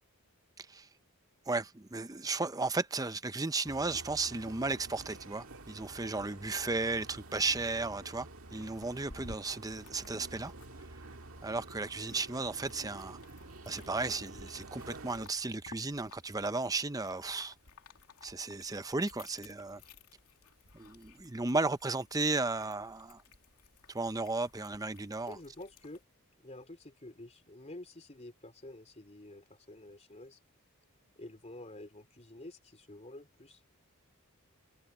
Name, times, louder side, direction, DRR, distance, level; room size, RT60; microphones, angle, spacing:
voice 1, 0.6-0.9 1.5-10.5 11.4-13.2 13.7-17.5 18.2-19.8 20.7-23.2 23.9-25.4, right 3 dB, 15° right, 0.7 m, -34 dB
sound 1, 3.6-15.3, right 2 dB, 65° right, 2.0 m, -50 dB
sound 2, 8.6-26.0, left 3 dB, 85° left, 2.6 m, -57 dB
voice 2, 25.3-26.0 26.4-30.4 31.1-33.6, left 1 dB, 30° left, 3.2 m, -49 dB
head